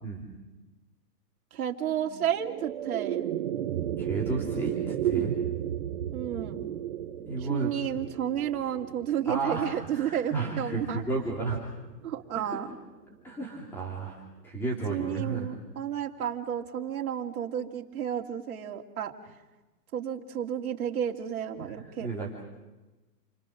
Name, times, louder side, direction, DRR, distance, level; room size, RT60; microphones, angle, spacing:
voice 1, 1.5-3.3 6.1-6.6 7.4-11.0 12.0-12.7 14.9-19.1 19.9-22.1, right 9 dB, 60° right, 2 dB, 2.8 m, -32 dB
sound 1, 2.0-12.5, right 11 dB, 30° right, 1.1 m, -34 dB
voice 2, 4.0-5.3 7.2-7.7 9.2-11.6 12.3-12.6 13.2-15.5 21.6-21.7 22.0-22.4, right 3 dB, 5° left, -3 dB, 2.9 m, -32 dB
29.5 x 24.5 x 6.5 m, 1.1 s
hypercardioid pair, 165°, 49 cm